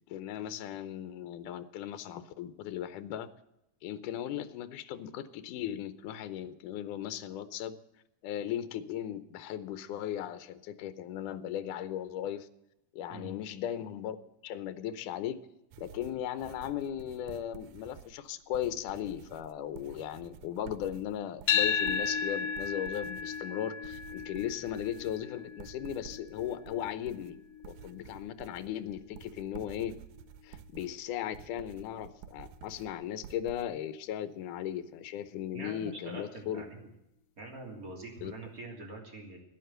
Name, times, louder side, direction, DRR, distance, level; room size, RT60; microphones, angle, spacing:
voice 1, 0.1-3.3 3.8-7.8 8.2-12.5 12.9-14.2 14.4-15.4 15.8-27.4 27.7-29.9 30.4-36.6 38.2-38.3, left 10 dB, 85° left, 13 dB, 2.4 m, -37 dB
sound 1, 15.7-33.6, right 8 dB, 80° right, 2.0 m, -51 dB
sound 2, 21.5-29.7, left 7 dB, 65° left, 1.8 m, -35 dB
voice 2, 35.5-36.9 37.4-39.4, right 2 dB, 30° right, 0 dB, 3.2 m, -44 dB
13.0 x 10.5 x 7.8 m, 0.85 s
omnidirectional pair, 3.5 m